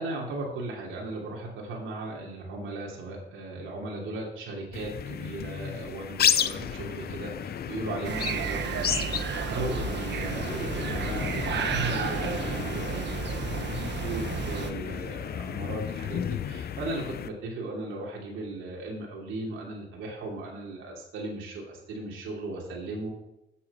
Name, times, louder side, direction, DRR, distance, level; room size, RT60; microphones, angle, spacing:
voice 1, 0.0-13.5 13.9-23.1, right 2 dB, 80° right, -2 dB, 2.8 m, -36 dB
sound 1, 4.7-17.3, left 9 dB, 55° left, 0.6 m, -32 dB
sound 2, 8.0-14.7, right 6 dB, 60° right, 1.3 m, -32 dB
8.4 x 7.9 x 6.7 m, 0.88 s
cardioid pair, 90°, 20 cm